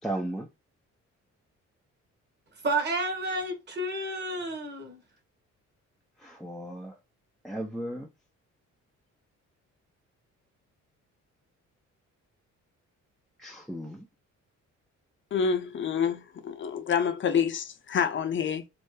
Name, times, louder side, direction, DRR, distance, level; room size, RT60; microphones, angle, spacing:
voice 1, 0.0-0.5 6.2-7.0 7.4-8.1 13.4-14.0, right 1 dB, ahead, 0.5 m, -35 dB
voice 2, 2.6-5.0, right 2 dB, 35° right, 1.6 m, -30 dB
voice 3, 15.3-18.7, left 7 dB, 40° left, 0.6 m, -27 dB
3.2 x 2.0 x 3.2 m
cardioid pair, 90°, 30 cm